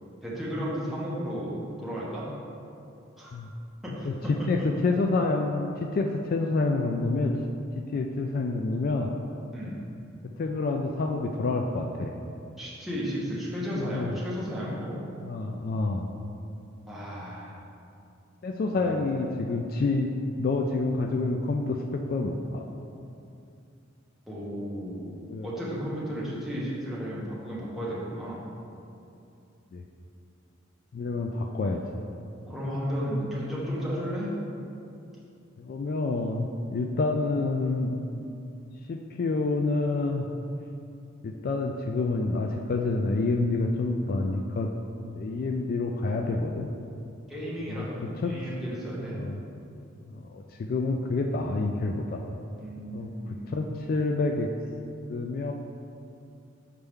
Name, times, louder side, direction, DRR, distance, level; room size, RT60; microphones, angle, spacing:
voice 1, 0.2-2.3 3.2-3.3 3.8-4.5 9.5-9.8 12.6-15.0 16.9-17.6 18.7-19.0 24.3-25.1 25.4-28.4 32.5-34.3 47.3-49.2 52.6-53.9, equal, ahead, -8 dB, 1.2 m, -34 dB
voice 2, 4.0-7.4 7.8-9.1 10.4-12.1 13.8-14.1 15.2-16.1 18.4-22.6 25.3-25.5 29.7-29.9 30.9-31.8 35.6-38.0 38.9-40.3 41.2-44.7 45.1-46.7 47.7-47.9 48.2-48.3 49.1-49.4 50.0-52.2 52.9-54.5 55.1-55.5, left 3 dB, 45° left, 3 dB, 0.3 m, -28 dB
6.7 x 4.5 x 3.6 m, 2.6 s
head